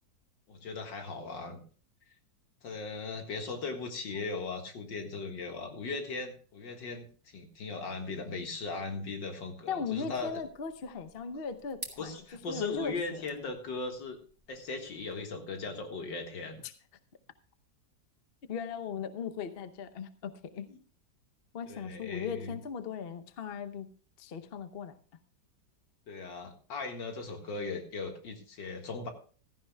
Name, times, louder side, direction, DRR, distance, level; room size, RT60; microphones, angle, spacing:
voice 1, 0.5-1.6 2.6-10.4 12.0-14.2 14.5-16.6 20.7-20.8 21.7-22.5 26.1-29.1, left 3 dB, 80° left, 4 dB, 2.5 m, -38 dB
voice 2, 9.7-12.1 12.5-13.2 16.6-16.7 18.5-20.7 21.5-23.9 24.2-24.9, left 6 dB, 45° left, 10 dB, 0.8 m, -38 dB
sound 1, 10.1-15.1, right 2 dB, 20° right, 1.7 m, -52 dB
15.5 x 14.0 x 2.3 m, 0.40 s
omnidirectional pair, 2.0 m